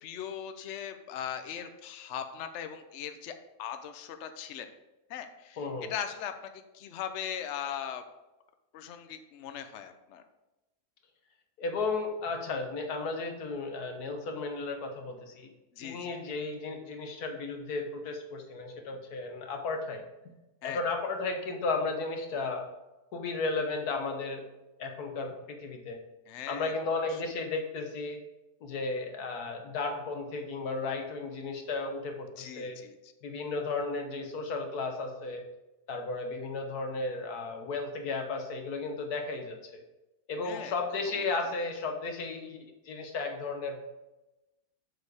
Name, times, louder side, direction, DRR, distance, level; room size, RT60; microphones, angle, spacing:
voice 1, 0.0-4.7 5.1-8.0 8.7-10.2 15.7-16.2 20.6-20.8 26.3-27.2 32.4-33.1 40.4-40.7, left 9 dB, 55° left, 8 dB, 0.9 m, -39 dB
voice 2, 5.6-5.9 11.6-15.5 15.8-20.0 20.6-22.7 23.1-24.4 24.8-26.0 26.5-28.2 28.6-32.8 33.2-35.4 35.9-39.8 40.3-43.8, left 3 dB, 70° left, 4 dB, 1.7 m, -34 dB
7.3 x 6.5 x 4.8 m, 1.0 s
omnidirectional pair, 1.7 m